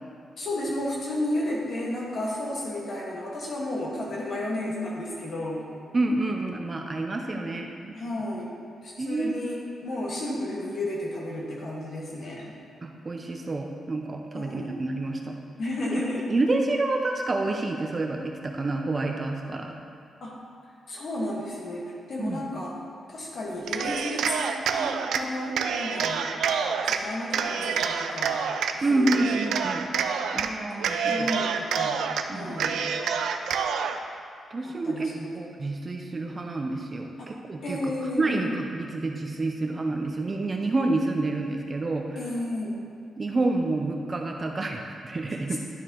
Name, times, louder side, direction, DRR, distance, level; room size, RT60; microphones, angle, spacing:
voice 1, 0.4-5.7 7.3-7.5 7.9-8.5 8.8-12.5 14.3-14.7 15.6-16.3 20.2-20.4 20.9-22.8 23.1-26.3 26.8-28.4 28.9-29.2 31.1-32.0 32.3-32.7 34.6-35.3 37.2-37.3 37.6-38.5 42.1-42.8 45.5-45.6, left 1 dB, 45° left, -4 dB, 1.6 m, -32 dB
voice 2, 5.9-8.0 9.0-9.4 12.8-15.3 16.3-19.8 22.2-22.4 28.8-29.9 30.3-31.3 32.3-32.8 34.5-35.1 35.3-37.8 38.2-42.2 43.2-45.6, right 2 dB, 25° right, 2 dB, 0.5 m, -28 dB
Cheering, 23.6-25.2 25.6-27.0 27.3-28.7 29.1-30.5 30.8-32.2 32.6-34.0, right 6 dB, 90° right, 0.4 m, -27 dB
11.0 x 4.4 x 3.7 m, 2.6 s
wide cardioid pair, 165°, 0 cm